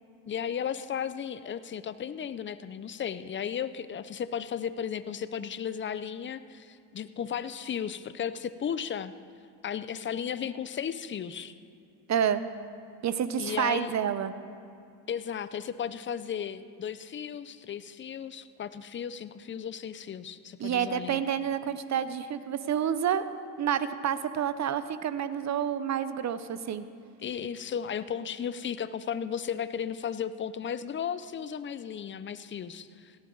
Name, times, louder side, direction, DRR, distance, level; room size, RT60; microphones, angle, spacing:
voice 1, 0.3-9.1 9.6-11.5 13.4-14.0 15.1-21.2 27.2-33.2, left 8 dB, 25° left, 13 dB, 0.6 m, -35 dB
voice 2, 12.1-12.4 13.0-14.3 20.6-23.3 23.6-26.8, right 9 dB, 40° right, 13 dB, 0.8 m, -29 dB
17.5 x 12.5 x 3.9 m, 2.5 s
supercardioid pair, 85°, 43 cm